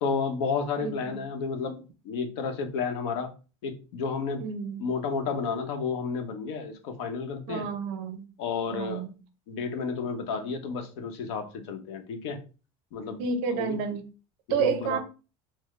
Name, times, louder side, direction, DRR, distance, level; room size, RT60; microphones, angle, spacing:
voice 1, 0.0-3.3 3.6-4.4 4.8-7.7 8.4-9.1 9.5-12.4 12.9-13.2 13.5-13.8 14.5-15.0, left 5 dB, 75° left, 6 dB, 0.8 m, -31 dB
voice 2, 0.8-1.2 4.4-4.8 7.5-8.3 8.7-9.1 13.2-14.0 14.5-15.0, right 6 dB, 60° right, 8 dB, 0.6 m, -30 dB
4.0 x 2.0 x 3.1 m, 0.33 s
cardioid pair, 175°, 15 cm